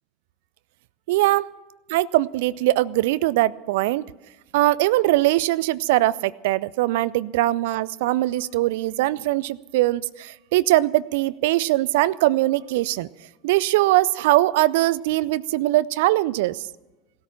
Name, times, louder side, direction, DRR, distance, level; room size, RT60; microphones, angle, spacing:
voice 1, 1.1-1.5 1.9-4.1 4.5-13.1 13.4-16.6, right 17 dB, 60° right, 21 dB, 0.4 m, -21 dB
18.5 x 13.5 x 5.8 m, 1.1 s
figure-of-eight pair, 75°, 0 cm